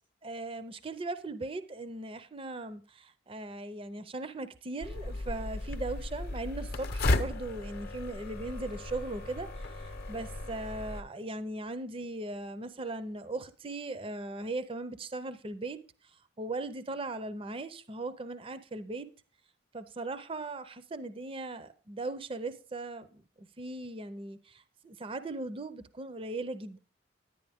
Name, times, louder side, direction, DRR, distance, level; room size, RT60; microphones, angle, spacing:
voice 1, 0.2-15.8 16.4-19.1 19.7-23.2 23.6-24.4 24.8-26.8, right 2 dB, 25° right, 0.5 m, -38 dB
sound 1, 4.8-11.0, left 2 dB, 50° left, 0.7 m, -35 dB
10.5 x 9.8 x 3.5 m
head